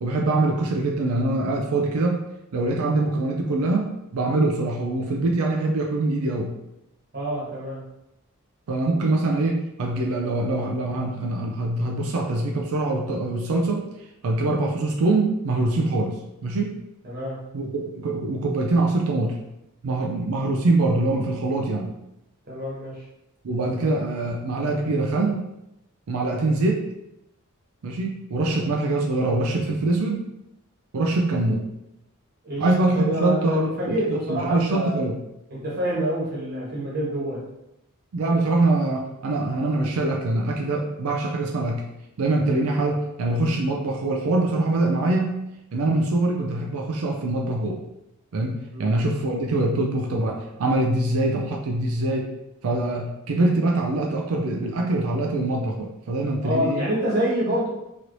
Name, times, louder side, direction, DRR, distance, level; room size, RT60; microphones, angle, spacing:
voice 1, 0.0-2.2 2.5-6.5 8.7-13.9 14.2-16.2 16.4-16.8 17.5-19.4 19.8-21.9 23.4-25.5 26.1-26.9 27.8-30.2 30.9-31.7 32.6-35.2 38.1-41.8 42.2-45.3 45.7-47.8 48.3-52.3 52.6-56.8, right 2 dB, 75° right, 1 dB, 0.4 m, -24 dB
voice 2, 7.1-7.8 17.0-17.4 22.5-23.0 32.4-35.0 35.5-37.4 48.7-48.9 56.4-57.7, equal, 45° right, -6 dB, 1.2 m, -27 dB
3.1 x 2.9 x 2.6 m, 0.87 s
head